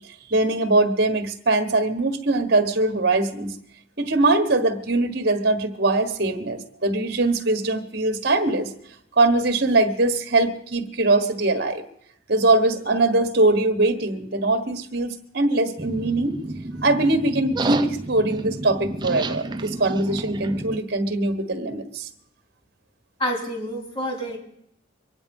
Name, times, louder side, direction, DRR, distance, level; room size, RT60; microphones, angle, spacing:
voice 1, 0.3-3.5 4.0-8.7 9.2-11.8 12.3-16.4 16.8-22.1, right 2 dB, 55° right, 8 dB, 1.3 m, -22 dB
sound 1, 15.8-20.8, right 2 dB, 20° right, 0.5 m, -31 dB
voice 2, 23.2-24.4, equal, 30° left, 0 dB, 3.5 m, -28 dB
23.5 x 9.8 x 5.4 m, 0.72 s
head